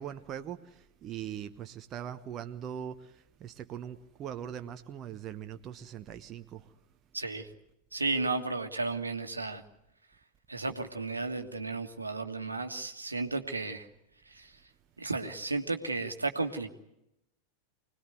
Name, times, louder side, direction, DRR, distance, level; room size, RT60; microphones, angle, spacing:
voice 1, 0.0-3.1 3.4-6.7, right 9 dB, 30° right, 1.0 m, -41 dB
voice 2, 7.1-7.5 7.9-9.6 10.5-13.9 14.3-14.5 15.0-16.7, right 3 dB, 80° right, 1.7 m, -33 dB
25.5 x 19.5 x 9.3 m
figure-of-eight pair, 90°, 0 cm